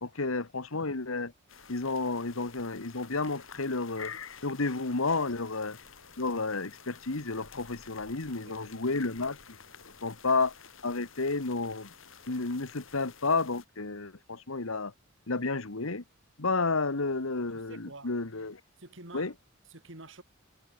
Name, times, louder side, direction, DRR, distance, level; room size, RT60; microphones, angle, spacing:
voice 1, 0.0-1.3 1.7-5.8 6.2-9.4 10.0-10.5 10.8-11.9 12.3-14.9 15.3-16.0 16.4-18.6 19.1-19.3, left 3 dB, 85° left, 1.6 m, -31 dB
sound 1, 1.5-13.7, left 6 dB, 70° left, 4.1 m, -52 dB
voice 2, 8.4-8.8 17.5-18.1 18.8-19.3 19.6-20.2, right 2 dB, 65° right, 4.0 m, -49 dB
head